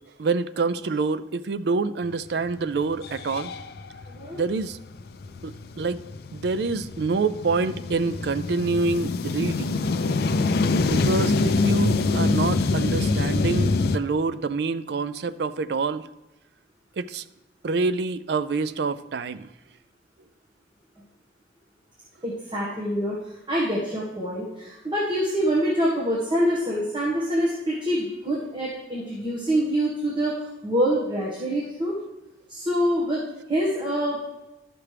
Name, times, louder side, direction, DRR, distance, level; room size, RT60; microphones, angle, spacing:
voice 1, 0.2-3.5 4.3-4.8 5.4-6.0 6.3-9.8 10.9-16.0 17.0-17.2 17.6-19.5, right 4 dB, 60° right, 14 dB, 0.4 m, -26 dB
sound 1, 2.4-2.5 2.9-14.0, left 3 dB, 55° left, 0.4 m, -25 dB
voice 2, 4.1-4.4 22.2-32.0 32.5-34.2, equal, 25° right, -6 dB, 1.5 m, -25 dB
12.0 x 6.0 x 3.3 m, 1.0 s
head